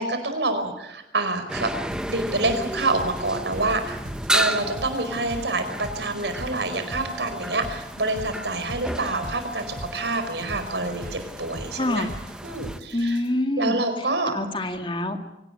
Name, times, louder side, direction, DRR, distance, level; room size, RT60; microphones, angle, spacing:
voice 1, 0.0-1.7 2.1-12.1 12.4-13.2 13.6-14.4, right 2 dB, 80° right, 8 dB, 4.8 m, -27 dB
sound 1, 1.5-12.8, right 1 dB, 5° right, 1.1 m, -33 dB
sound 2, 1.9-13.3, right 1 dB, 50° right, 4.7 m, -41 dB
voice 2, 11.8-12.1 12.9-13.8 14.3-15.2, left 1 dB, 30° left, 6 dB, 2.1 m, -25 dB
24.5 x 18.0 x 9.7 m, 0.94 s
head